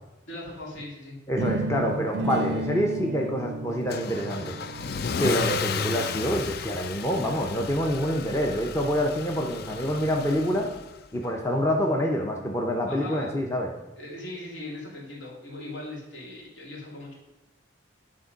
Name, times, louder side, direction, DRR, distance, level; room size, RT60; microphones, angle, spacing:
voice 1, 0.3-1.2 12.9-13.3 14.0-17.1, left 1 dB, 75° left, -3 dB, 2.4 m, -39 dB
voice 2, 1.3-4.6 5.2-10.7 11.1-13.7, equal, 15° left, 1 dB, 0.6 m, -26 dB
sound 1, 1.4-7.3, right 2 dB, 60° right, 0.4 m, -34 dB
Car / Engine starting / Accelerating revving vroom, 3.9-11.0, left 6 dB, 55° left, 0.4 m, -33 dB
9.8 x 3.7 x 5.2 m, 0.98 s
head